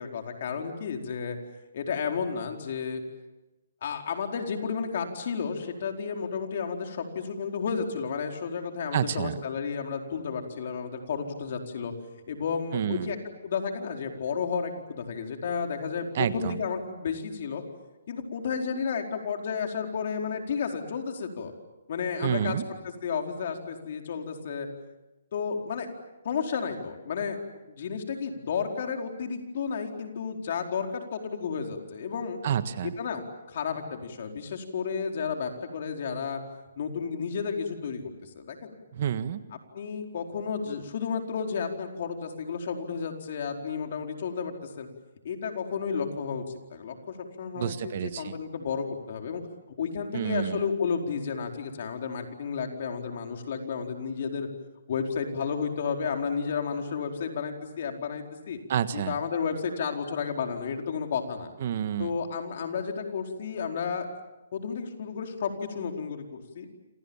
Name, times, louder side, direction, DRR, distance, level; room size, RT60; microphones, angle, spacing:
voice 1, 0.0-1.4 1.7-3.0 3.8-11.9 12.3-13.2 13.4-17.6 18.1-21.5 21.9-22.6 22.8-24.7 25.3-25.9 26.2-27.4 27.7-32.4 32.8-36.4 36.8-38.7 39.7-44.9 45.2-46.4 46.7-49.4 49.8-54.5 54.9-58.6 58.9-61.5 62.0-64.1 64.5-66.7, left 6 dB, 55° left, 3 dB, 4.6 m, -32 dB
voice 2, 8.9-9.4 12.7-13.1 16.1-16.6 22.2-22.7 32.4-32.9 38.9-39.4 47.5-48.4 50.1-50.6 58.7-59.2 61.6-62.1, right 9 dB, 50° right, 12 dB, 1.6 m, -29 dB
28.0 x 27.5 x 7.3 m, 1.0 s
hypercardioid pair, 150°, 0 cm